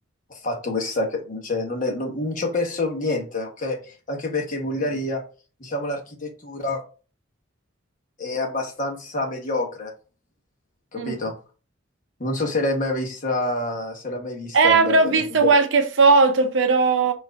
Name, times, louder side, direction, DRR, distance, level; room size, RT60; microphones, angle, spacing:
voice 1, 0.3-5.2 5.6-6.8 8.2-9.9 10.9-11.3 12.2-15.5, left 2 dB, 40° left, 1.1 m, -27 dB
voice 2, 14.5-17.1, right 4 dB, 60° right, 0.6 m, -17 dB
4.4 x 2.6 x 4.6 m
head